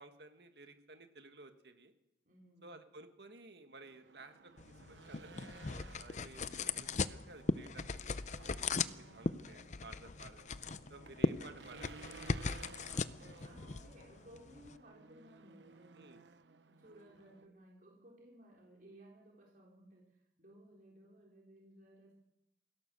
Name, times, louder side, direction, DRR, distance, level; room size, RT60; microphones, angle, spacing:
voice 1, 0.0-1.9 2.6-8.1 8.7-10.5 10.9-12.4 15.9-16.2, right 3 dB, 65° right, 7 dB, 1.8 m, -55 dB
voice 2, 2.2-2.7 8.5-9.3 11.1-11.4 13.4-16.3 16.7-22.1, right 1 dB, 50° right, -2 dB, 3.9 m, -60 dB
Race car auto racing / Engine, 3.8-17.5, right 4 dB, 85° right, 0.9 m, -57 dB
sound 1, 4.6-14.8, left 4 dB, 40° left, 0.6 m, -39 dB
23.5 x 16.5 x 6.8 m, 0.89 s
head